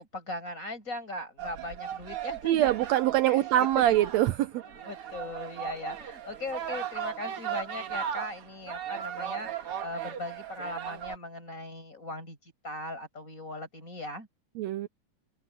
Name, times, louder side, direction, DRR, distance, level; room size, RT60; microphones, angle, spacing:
voice 1, 0.0-2.8 3.3-4.0 4.7-14.3, left 2 dB, 20° left, 6.3 m, -39 dB
sound 1, 1.4-11.2, right 9 dB, 50° right, 2.2 m, -37 dB
voice 2, 2.4-4.6 14.6-14.9, right 13 dB, 90° right, 1.5 m, -24 dB
open air
omnidirectional pair, 3.9 m